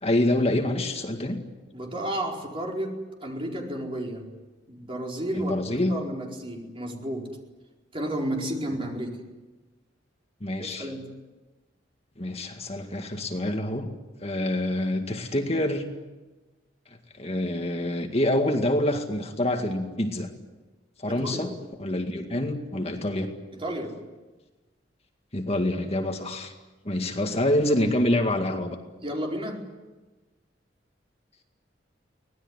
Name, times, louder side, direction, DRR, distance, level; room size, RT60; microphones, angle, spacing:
voice 1, 0.0-1.4 5.3-6.0 10.4-10.9 12.2-13.9 14.2-15.9 17.2-20.3 21.0-21.5 21.8-23.3 25.3-26.5 26.8-28.8, left 1 dB, 35° left, 4 dB, 2.0 m, -26 dB
voice 2, 1.7-4.3 4.7-7.3 7.9-9.2 10.8-11.1 21.1-21.5 23.5-24.0 29.0-29.7, right 1 dB, 30° right, 0 dB, 4.6 m, -32 dB
24.5 x 19.0 x 9.8 m, 1.2 s
head